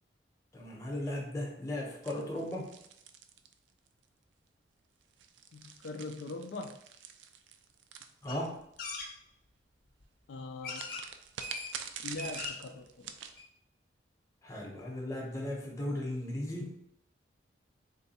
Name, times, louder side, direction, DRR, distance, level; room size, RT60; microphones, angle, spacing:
voice 1, 0.5-2.7 8.2-8.5 14.4-16.7, left 1 dB, 15° left, -2 dB, 0.8 m, -36 dB
sound 1, 2.0-4.0 5.0-8.8 10.7-13.4, right 7 dB, 75° right, 0.3 m, -46 dB
voice 2, 5.5-6.8 10.3-10.9 12.0-13.1, left 3 dB, 75° left, 4 dB, 0.4 m, -41 dB
sound 2, 8.3-8.4 8.8-9.1 10.0-10.1 10.6-11.0 11.4-11.7 12.0-12.7 13.1-13.2 13.4-13.5, left 3 dB, 50° left, 0.7 m, -40 dB
3.7 x 2.3 x 4.1 m, 0.73 s
head